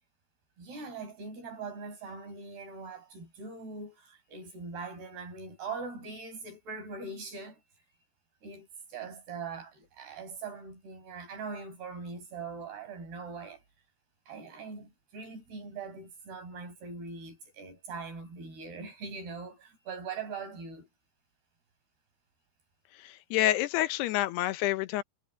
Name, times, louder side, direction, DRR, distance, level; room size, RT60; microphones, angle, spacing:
voice 1, 0.6-7.6 8.4-13.6 14.3-20.9, right 4 dB, 75° right, 9.6 m, -41 dB
voice 2, 23.0-25.0, left 15 dB, 90° left, 3.0 m, -28 dB
omnidirectional pair, 4.6 m